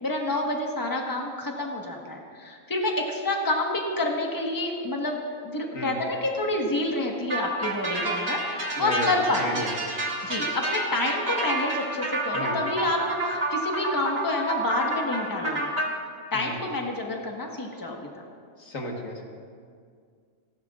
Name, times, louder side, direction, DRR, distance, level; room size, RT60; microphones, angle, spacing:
voice 1, 0.0-9.7 10.2-15.7 16.3-18.2, left 2 dB, 15° left, 0 dB, 1.4 m, -28 dB
sound 1, 7.3-15.9, right 1 dB, 85° right, 2.3 m, -29 dB
voice 2, 8.8-9.7 12.3-12.6 16.3-16.5 18.6-19.2, left 1 dB, 80° left, 0 dB, 2.0 m, -33 dB
30.0 x 11.5 x 2.5 m, 2.1 s
omnidirectional pair, 1.4 m